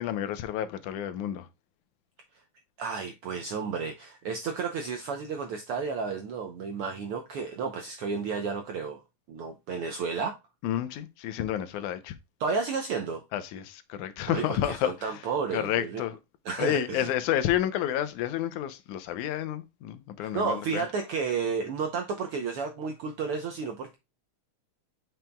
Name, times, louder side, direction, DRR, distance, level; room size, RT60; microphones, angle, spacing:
voice 1, 0.0-1.5 10.6-12.2 13.3-15.2 15.5-16.2 16.6-20.8, left 11 dB, 85° left, 2.2 m, -30 dB
voice 2, 2.8-9.0 9.3-10.4 12.4-13.2 14.3-16.0 16.4-17.1 20.2-24.0, right 5 dB, 75° right, 1.3 m, -32 dB
7.7 x 5.7 x 2.2 m
omnidirectional pair, 3.4 m